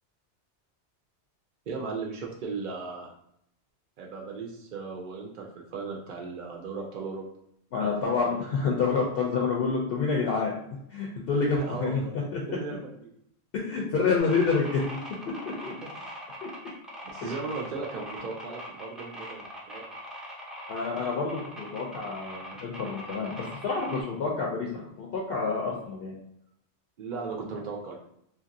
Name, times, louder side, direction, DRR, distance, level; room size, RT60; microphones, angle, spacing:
voice 1, 1.7-3.1 4.0-7.3 7.7-8.3 11.4-12.1 12.5-13.1 15.8-15.9 17.1-19.8 27.0-28.0, right 4 dB, 60° right, 0 dB, 0.5 m, -37 dB
voice 2, 7.7-10.5 10.9-12.4 13.5-15.0 15.3-15.7 17.2-17.3 20.7-23.4 23.6-26.1, left 4 dB, 65° left, -2 dB, 0.7 m, -28 dB
sound 1, 14.2-24.0, equal, ahead, 0.4 m, -41 dB
2.8 x 2.5 x 2.5 m, 0.74 s
omnidirectional pair, 1.2 m